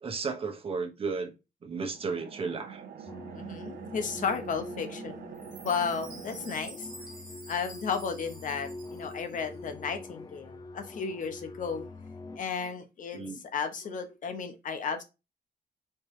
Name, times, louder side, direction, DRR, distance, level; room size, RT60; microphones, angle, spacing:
voice 1, 0.0-1.3 1.6-2.8 13.1-13.4, right 4 dB, 35° right, 1.0 m, -33 dB
sound 1, 1.9-6.6, right 7 dB, 65° right, 0.7 m, -44 dB
sound 2, 3.1-12.4, left 2 dB, 25° left, 0.5 m, -45 dB
voice 2, 3.3-5.1 5.6-6.9 7.5-11.9 12.3-13.2 13.5-15.0, left 6 dB, 50° left, 0.9 m, -33 dB
Chime, 5.3-9.6, right 1 dB, 5° right, 1.7 m, -49 dB
4.5 x 3.3 x 3.2 m
wide cardioid pair, 170°, 16 cm